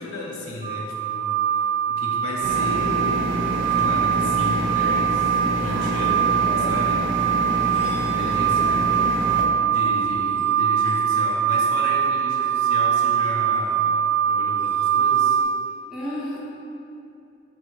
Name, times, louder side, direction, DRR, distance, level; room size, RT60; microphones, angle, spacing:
voice 1, 0.0-7.3 8.0-9.0 9.7-14.0 14.2-15.4, left 2 dB, 75° left, -3 dB, 0.5 m, -34 dB
sound 1, 0.6-15.4, right 8 dB, 30° right, 0.8 m, -22 dB
sound 2, 2.4-9.4, right 1 dB, 60° right, 0.4 m, -28 dB
voice 2, 5.6-5.9 6.4-6.7 15.9-16.4, equal, ahead, -8 dB, 0.6 m, -33 dB
3.8 x 2.3 x 4.4 m, 2.7 s
head